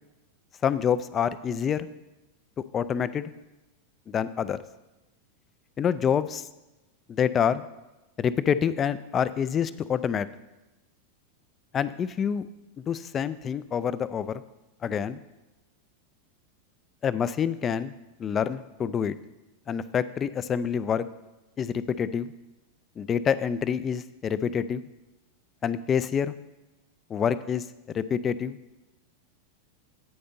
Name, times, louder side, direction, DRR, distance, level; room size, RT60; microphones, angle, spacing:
voice 1, 0.6-1.9 2.7-3.3 4.1-4.6 5.8-6.5 7.1-7.6 8.2-10.3 11.7-12.5 12.9-14.4 14.8-15.2 17.0-17.9 18.2-19.2 19.7-21.0 21.6-22.3 23.0-24.8 25.6-26.3 27.1-27.6 27.9-28.6, left 8 dB, 25° left, 15 dB, 0.3 m, -27 dB
8.7 x 4.2 x 5.2 m, 1.0 s
figure-of-eight pair, 90°, 0 cm